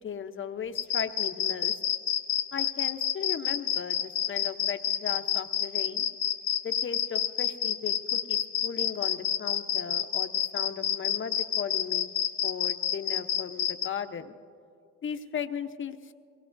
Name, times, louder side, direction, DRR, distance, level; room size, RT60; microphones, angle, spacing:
voice 1, 0.0-1.8 2.5-6.1 6.6-12.1 12.4-14.3 15.0-16.1, left 7 dB, 40° left, 8 dB, 0.9 m, -37 dB
sound 1, 0.8-13.9, left 10 dB, 90° left, 1.2 m, -28 dB
23.0 x 19.5 x 2.6 m, 2.4 s
cardioid pair, 90°, 30 cm